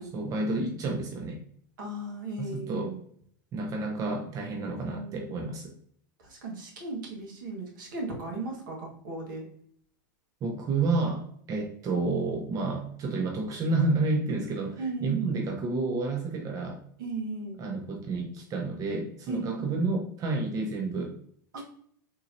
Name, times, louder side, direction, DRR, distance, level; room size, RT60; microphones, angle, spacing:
voice 1, 0.1-1.4 2.4-3.0 3.5-5.7 10.4-16.8 17.6-21.1 21.6-21.7, right 3 dB, 30° right, 2 dB, 0.6 m, -30 dB
voice 2, 1.8-3.0 4.6-5.5 6.2-9.5 14.8-15.4 17.0-17.6 19.3-19.8 21.5-21.6, right 2 dB, 75° right, -1 dB, 1.4 m, -36 dB
3.7 x 2.9 x 2.7 m, 0.64 s
hypercardioid pair, 110°, 11 cm